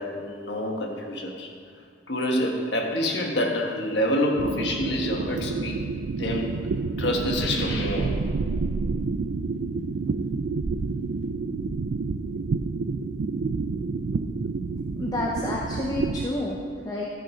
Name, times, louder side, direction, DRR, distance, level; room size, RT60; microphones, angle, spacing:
voice 1, 0.0-1.5 2.1-5.9 6.2-6.5 7.0-8.2, left 1 dB, 65° left, 1 dB, 1.4 m, -27 dB
sound 1, 4.4-16.3, right 4 dB, 70° right, 0.4 m, -29 dB
voice 2, 15.0-17.1, left 1 dB, 20° left, -3 dB, 0.7 m, -30 dB
12.5 x 6.4 x 5.1 m, 2.2 s
head